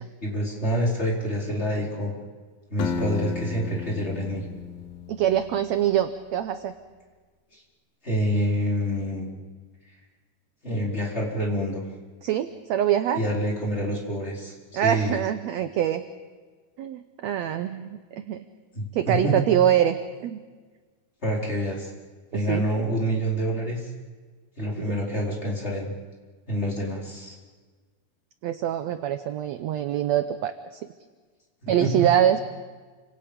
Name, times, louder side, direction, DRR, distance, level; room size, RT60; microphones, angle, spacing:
voice 1, 0.2-2.1 2.7-4.4 7.5-7.6 8.0-9.3 10.6-11.8 13.1-15.2 18.7-19.4 21.2-21.9 22.3-23.9 24.6-25.9 26.5-27.3 31.6-32.1, equal, 20° left, -3 dB, 4.3 m, -27 dB
Acoustic guitar, 2.8-5.8, left 6 dB, 85° left, 3.1 m, -33 dB
voice 2, 5.1-6.7 12.2-13.2 14.7-16.0 16.8-18.0 18.3-18.4 18.9-20.4 22.3-22.6 28.4-30.8 31.7-32.4, right 10 dB, 75° right, 9 dB, 1.6 m, -24 dB
30.0 x 26.0 x 5.2 m, 1.4 s
omnidirectional pair, 4.0 m